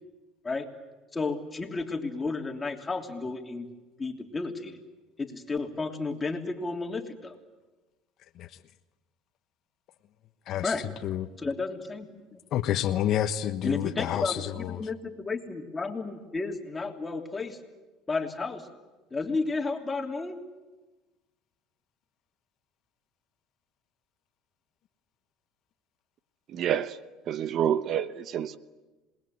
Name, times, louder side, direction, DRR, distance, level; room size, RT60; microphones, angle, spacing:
voice 1, 1.1-3.7 4.0-4.8 5.2-7.3 10.6-10.9 11.4-12.4 13.6-17.6 18.1-18.7 19.1-20.4, left 3 dB, 20° left, 2 dB, 3.2 m, -32 dB
voice 2, 10.5-11.3 12.5-14.8, left 11 dB, 55° left, 10 dB, 1.1 m, -29 dB
voice 3, 26.5-26.9 27.3-28.6, right 9 dB, 50° right, 14 dB, 1.0 m, -28 dB
27.0 x 20.0 x 9.3 m, 1.2 s
supercardioid pair, 100°, 0 cm